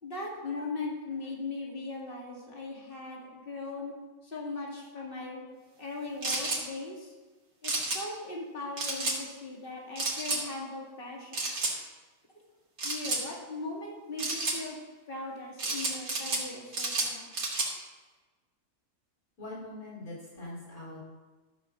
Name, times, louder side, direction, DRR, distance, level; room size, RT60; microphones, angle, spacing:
voice 1, 0.0-3.9 4.2-5.4 5.8-7.1 7.6-11.5 12.8-14.8 15.1-17.3, left 3 dB, 40° left, -2 dB, 2.2 m, -39 dB
sound 1, 6.2-6.6 7.6-8.0 8.8-9.2 10.0-10.4 11.3-11.7 12.8-13.2 14.2-14.6 15.6-16.4 16.7-17.7, right 2 dB, 80° right, 2.4 m, -31 dB
voice 2, 19.4-21.1, left 2 dB, 85° left, -7 dB, 4.1 m, -42 dB
12.5 x 4.7 x 6.8 m, 1.3 s
omnidirectional pair, 1.5 m